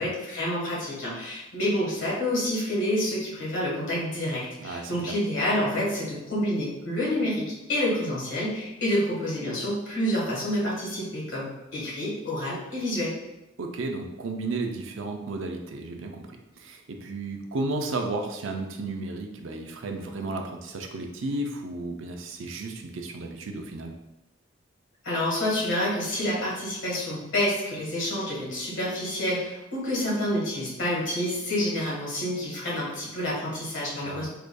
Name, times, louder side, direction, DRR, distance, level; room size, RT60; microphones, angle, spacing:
voice 1, 0.0-13.1 25.0-34.3, left 1 dB, 70° left, -6 dB, 1.5 m, -28 dB
voice 2, 4.6-5.1 13.6-23.9 34.0-34.3, right 2 dB, 85° right, 3 dB, 0.5 m, -33 dB
4.8 x 2.5 x 2.2 m, 0.97 s
head